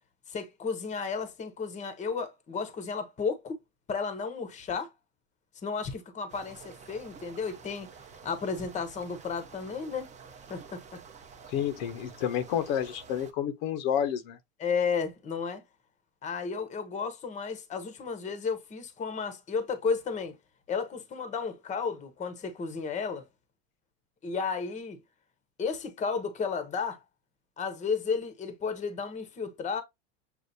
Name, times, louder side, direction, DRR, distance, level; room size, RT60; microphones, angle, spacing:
voice 1, 0.3-3.6 3.9-4.9 5.6-7.9 8.2-10.1 10.5-11.0 14.6-15.6 16.2-20.4 20.7-23.2 24.2-25.0 25.6-27.0 27.6-29.8, left 5 dB, 20° left, 0.9 m, -33 dB
sound 1, 6.3-13.3, right 6 dB, 20° right, 0.7 m, -50 dB
voice 2, 11.5-14.4, left 9 dB, 55° left, 0.8 m, -30 dB
6.7 x 2.5 x 2.6 m
supercardioid pair, 125°, 36 cm